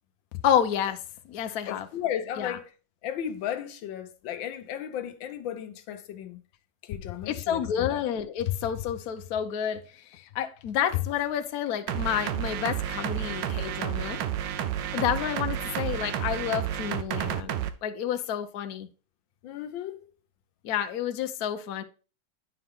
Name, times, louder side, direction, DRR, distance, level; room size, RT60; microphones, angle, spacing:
voice 1, 0.4-1.0 1.3-1.9 2.4-2.6 7.3-14.2 14.9-18.9 20.6-21.8, left 9 dB, 65° left, 1.0 m, -29 dB
voice 2, 1.7-2.7 3.0-6.4 6.8-8.0 19.4-20.1, left 10 dB, 80° left, 1.5 m, -35 dB
sound 1, 11.9-17.7, right 10 dB, 75° right, 1.3 m, -31 dB
9.5 x 4.7 x 3.6 m
omnidirectional pair, 2.1 m